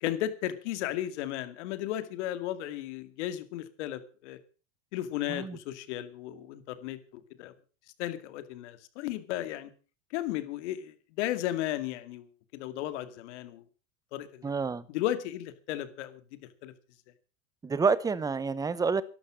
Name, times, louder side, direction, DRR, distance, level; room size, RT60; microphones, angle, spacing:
voice 1, 0.0-4.4 4.9-7.0 7.4-7.5 8.0-9.7 10.1-13.6 14.1-14.5 14.9-16.7, left 13 dB, 70° left, 2.3 m, -35 dB
voice 2, 14.4-14.8 17.6-19.0, right 5 dB, 10° right, 0.8 m, -28 dB
13.5 x 12.0 x 6.3 m
supercardioid pair, 135°, 36 cm